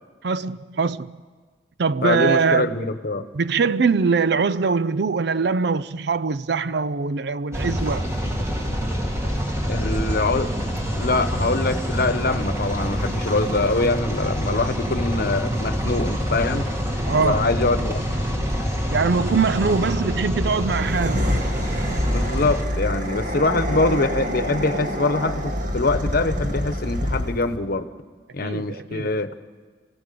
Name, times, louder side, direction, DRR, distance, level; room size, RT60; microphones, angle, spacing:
voice 1, 0.2-1.2 1.8-2.8 3.3-8.1 17.1-17.5 18.9-21.3 28.4-29.1, right 5 dB, 70° right, 0.5 m, -22 dB
voice 2, 2.0-3.3 9.7-10.5 11.0-16.7 17.2-18.0 22.1-27.9 28.3-29.3, left 3 dB, 60° left, 1.0 m, -24 dB
sound 1, 7.5-22.6, equal, 15° right, 2.4 m, -26 dB
sound 2, 20.7-27.5, equal, 50° right, 1.8 m, -26 dB
28.5 x 16.5 x 6.8 m
head